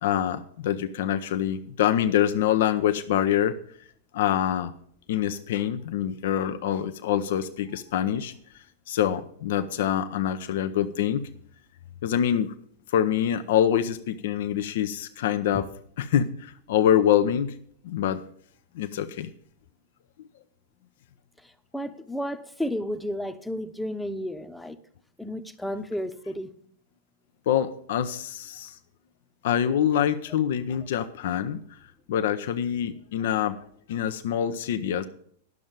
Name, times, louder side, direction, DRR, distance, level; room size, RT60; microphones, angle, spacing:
voice 1, 0.0-3.6 4.1-4.7 5.1-8.3 8.9-11.3 12.0-12.5 12.9-15.7 16.0-17.5 17.8-18.2 18.8-19.3 27.5-28.8 29.4-31.6 32.1-33.6 33.9-35.0, left 10 dB, 65° left, 0.7 m, -25 dB
voice 2, 21.7-24.8 25.2-26.5, equal, ahead, 0.9 m, -32 dB
11.0 x 6.3 x 7.3 m
hypercardioid pair, 105°, 0 cm